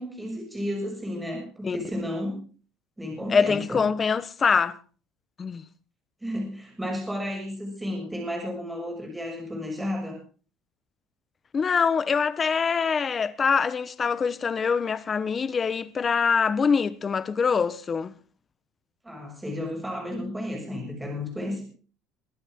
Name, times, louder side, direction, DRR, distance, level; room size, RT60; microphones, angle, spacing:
voice 1, 0.0-2.4 3.0-3.9 6.2-10.2 19.0-21.6, left 1 dB, 5° right, 6.2 m, -32 dB
voice 2, 3.3-4.8 5.4-5.6 11.5-18.1, left 6 dB, 25° left, 1.0 m, -24 dB
22.5 x 11.5 x 3.7 m
cardioid pair, 155°, 0 cm